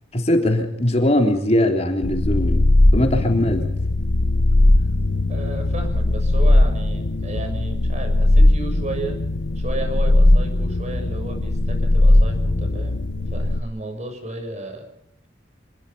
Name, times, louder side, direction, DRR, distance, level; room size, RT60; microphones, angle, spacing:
voice 1, 0.1-2.6 2.9-3.7, left 1 dB, 35° left, 3 dB, 3.6 m, -20 dB
sound 1, 2.0-13.6, left 1 dB, 80° left, 1.1 m, -18 dB
voice 2, 5.3-9.2 9.5-14.8, right 2 dB, 40° right, 6 dB, 6.8 m, -33 dB
27.0 x 20.5 x 5.6 m, 0.73 s
head